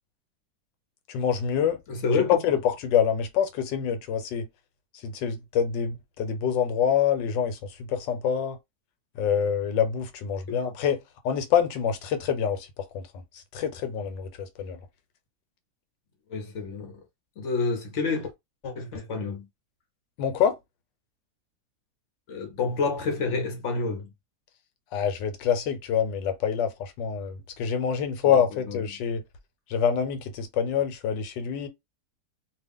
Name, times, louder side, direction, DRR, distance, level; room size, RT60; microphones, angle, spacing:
voice 1, 1.1-1.8 2.1-4.5 5.0-7.6 7.9-8.6 9.2-11.0 11.2-13.0 13.3-14.8 20.2-20.6 24.9-29.2 29.7-31.7, left 8 dB, 90° left, 1.4 m, -26 dB
voice 2, 1.9-2.4 10.5-10.6 16.3-17.0 17.4-18.3 18.6-19.5 22.3-24.1 28.3-28.4 28.7-28.8, left 4 dB, 60° left, 0.8 m, -29 dB
2.8 x 2.4 x 3.5 m
omnidirectional pair, 1.9 m